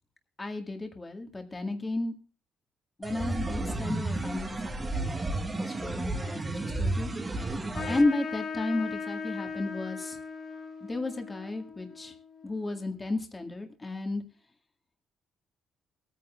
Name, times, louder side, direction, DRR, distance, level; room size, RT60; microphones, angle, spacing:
voice 1, 0.4-2.1 3.0-7.1 7.9-10.2 10.8-12.2 12.4-14.2, left 2 dB, 25° left, 4 dB, 1.9 m, -33 dB
sound 1, 3.0-8.0, right 2 dB, 25° right, 1.3 m, -32 dB
Trumpet, 7.7-12.7, left 5 dB, 60° left, 2.5 m, -39 dB
22.0 x 9.5 x 2.4 m, 0.37 s
cardioid pair, 90°, 0 cm